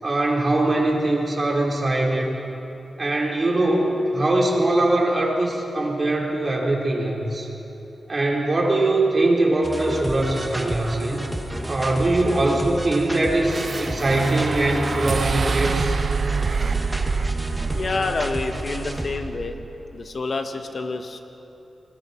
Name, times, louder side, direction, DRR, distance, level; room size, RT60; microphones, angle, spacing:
voice 1, 0.0-2.3 3.0-7.5 8.1-11.2 11.7-16.0, right 2 dB, 40° right, -3 dB, 4.7 m, -22 dB
sound 1, 9.6-19.2, right 1 dB, 15° right, 2.2 m, -31 dB
sound 2, 13.5-19.8, right 5 dB, 55° right, 0.4 m, -27 dB
voice 2, 17.7-19.6 19.9-21.2, left 3 dB, 55° left, 6 dB, 1.5 m, -28 dB
28.5 x 20.0 x 4.7 m, 3.0 s
cardioid pair, 75°, 0 cm